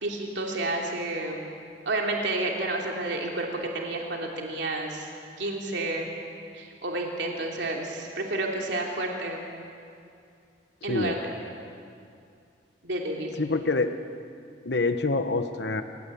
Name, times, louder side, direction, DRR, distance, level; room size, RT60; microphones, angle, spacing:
voice 1, 0.0-1.5 1.9-5.1 5.4-6.1 6.5-9.5 10.8-11.4 12.8-13.4, right 2 dB, 75° right, 0 dB, 3.0 m, -30 dB
voice 2, 13.4-13.9 14.6-15.8, left 3 dB, 65° left, 8 dB, 1.0 m, -26 dB
27.5 x 17.0 x 8.6 m, 2.4 s
head